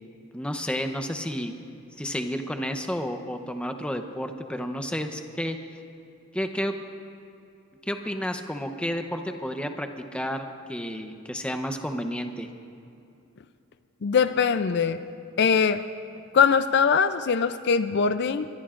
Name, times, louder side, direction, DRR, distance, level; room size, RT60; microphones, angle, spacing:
voice 1, 0.3-1.6 2.0-5.6 6.3-6.7 7.9-12.5, equal, 5° left, 6 dB, 0.7 m, -31 dB
voice 2, 14.0-15.0 15.4-15.8 16.3-18.5, left 6 dB, 55° left, 11 dB, 0.4 m, -22 dB
23.5 x 21.5 x 2.5 m, 2.7 s
head